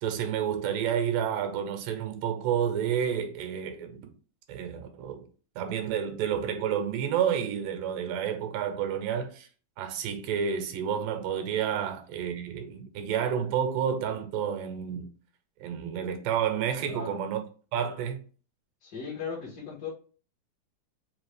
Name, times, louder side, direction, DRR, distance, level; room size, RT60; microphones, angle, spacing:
voice 1, 0.0-4.1 4.5-5.3 5.6-9.5 9.8-15.1 15.6-17.4 17.7-18.2, right 8 dB, 80° right, 2.3 m, -30 dB
voice 2, 16.9-17.2 18.8-19.9, left 6 dB, 55° left, 1.1 m, -38 dB
5.5 x 2.5 x 3.2 m
omnidirectional pair, 4.0 m